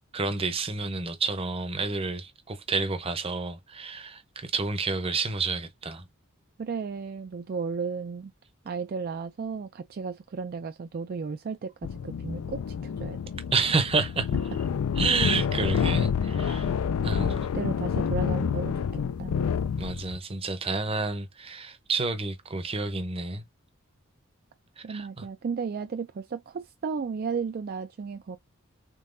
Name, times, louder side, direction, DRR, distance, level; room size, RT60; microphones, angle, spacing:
voice 1, 0.1-6.0 13.5-14.3 15.0-16.7 17.0-17.3 19.8-23.4 24.8-25.2, right 4 dB, 25° right, 0.7 m, -29 dB
voice 2, 6.6-8.3 8.6-13.2 17.2-19.4 24.8-28.4, right 5 dB, 45° right, 0.3 m, -34 dB
sound 1, 11.8-20.2, left 7 dB, 80° left, 0.4 m, -28 dB
3.8 x 3.6 x 2.5 m
head